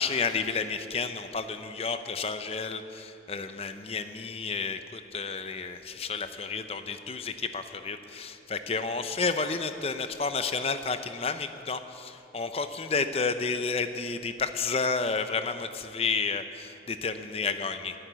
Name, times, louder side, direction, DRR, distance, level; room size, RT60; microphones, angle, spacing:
voice 1, 0.0-17.9, left 4 dB, 35° left, 9 dB, 0.6 m, -31 dB
11.0 x 11.0 x 9.1 m, 2.8 s
head